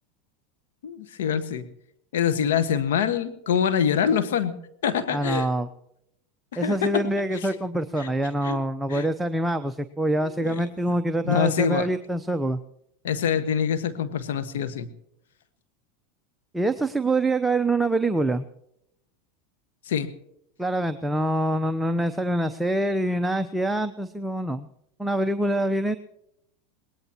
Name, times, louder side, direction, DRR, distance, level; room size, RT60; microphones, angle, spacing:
voice 1, 0.8-1.6 2.1-4.5 4.8-5.5 6.5-7.0 7.3-7.5 8.0-8.1 8.4-8.6 8.9-9.1 10.2-10.7 11.2-11.9 13.0-14.9 19.9-20.1, left 8 dB, 80° left, 13 dB, 1.5 m, -25 dB
voice 2, 5.1-5.7 6.6-12.6 16.5-18.4 20.6-24.7 25.0-26.0, right 1 dB, 5° right, 8 dB, 0.8 m, -25 dB
22.5 x 19.0 x 3.0 m, 0.77 s
hypercardioid pair, 105°, 0 cm